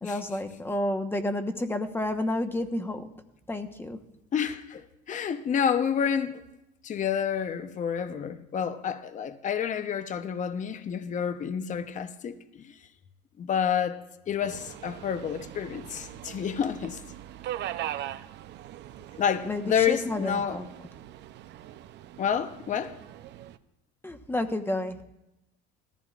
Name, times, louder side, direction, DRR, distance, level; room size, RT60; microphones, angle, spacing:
voice 1, 0.0-3.1 3.5-4.0 19.4-20.6 24.0-25.0, left 1 dB, 10° left, 1.2 m, -30 dB
voice 2, 4.3-6.4 6.8-12.7 13.4-17.0 19.2-20.6 22.2-23.0, left 8 dB, 35° left, 0.9 m, -29 dB
Subway metro underground, 14.4-23.6, right 12 dB, 55° right, 0.7 m, -41 dB
19.5 x 14.5 x 2.5 m
supercardioid pair, 95°, 21 cm